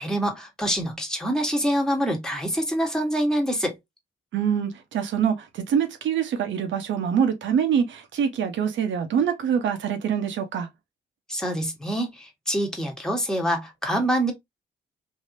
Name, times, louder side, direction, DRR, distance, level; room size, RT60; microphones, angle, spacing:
voice 1, 0.0-3.8 11.3-14.3, equal, 5° left, 1.3 m, -25 dB
voice 2, 4.3-10.7, right 8 dB, 80° right, 0.9 m, -25 dB
3.4 x 2.8 x 2.6 m
cardioid pair, 80°, 19 cm